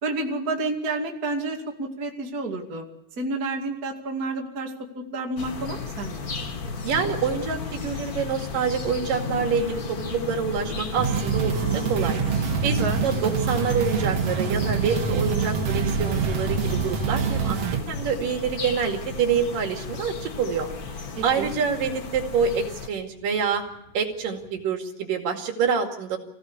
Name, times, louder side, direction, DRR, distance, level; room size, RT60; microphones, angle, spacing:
voice 1, 0.0-2.9 3.2-6.3 12.8-13.0 21.2-21.6, right 2 dB, 30° right, 1 dB, 2.5 m, -30 dB
sound 1, 5.4-22.9, left 5 dB, 65° left, 0.9 m, -35 dB
voice 2, 6.8-12.2 12.6-12.8 13.0-17.6 17.9-20.7 21.2-23.6 23.9-26.2, right 6 dB, 70° right, 3 dB, 3.9 m, -26 dB
sound 2, 9.0-24.6, left 2 dB, 35° left, 3.9 m, -44 dB
sound 3, 11.0-17.8, right 5 dB, 50° right, 2.6 m, -25 dB
26.5 x 16.5 x 8.5 m, 0.85 s
omnidirectional pair, 4.1 m